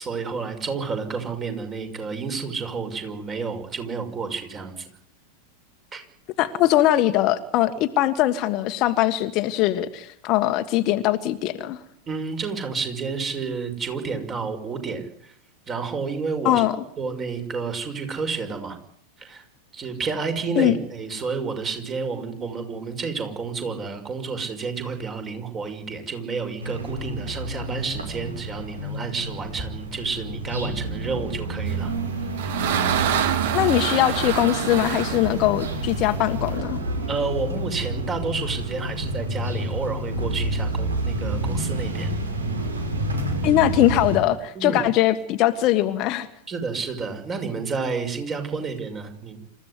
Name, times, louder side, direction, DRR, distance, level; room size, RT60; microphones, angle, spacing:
voice 1, 0.0-4.9 5.9-6.0 12.1-15.3 15.7-16.6 17.0-18.8 19.2-19.4 19.7-31.9 37.1-42.2 44.6-44.8 46.5-49.4, right 5 dB, 20° right, 7 dB, 6.0 m, -30 dB
voice 2, 6.4-11.8 16.4-16.8 20.5-20.8 33.5-36.8 43.4-46.3, left 14 dB, 40° left, 10 dB, 1.5 m, -21 dB
sound 1, 26.6-44.2, right 1 dB, 70° right, 5.8 m, -29 dB
sound 2, 31.9-36.6, right 9 dB, 55° right, 2.8 m, -27 dB
27.5 x 15.0 x 9.9 m, 0.65 s
figure-of-eight pair, 90°, 0 cm